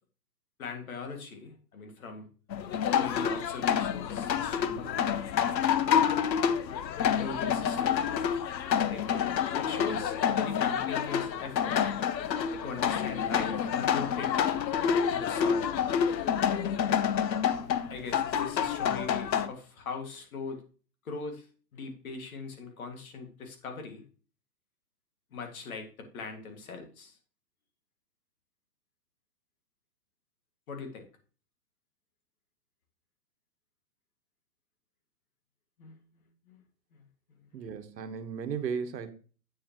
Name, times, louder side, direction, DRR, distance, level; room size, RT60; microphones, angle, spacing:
voice 1, 0.6-2.3 2.9-5.2 7.1-8.0 8.9-11.8 12.6-14.4 15.1-15.8 17.9-20.6 21.0-21.5 21.7-24.0 25.3-27.2 30.7-31.0 35.8-36.6 36.9-37.0 37.6-37.7, left 4 dB, 55° left, 2.2 m, -41 dB
sound 1, 2.5-19.5, left 8 dB, 85° left, 0.9 m, -28 dB
voice 2, 37.5-39.1, right 6 dB, 80° right, 1.4 m, -35 dB
8.5 x 7.3 x 3.0 m
hypercardioid pair, 165°, 49 cm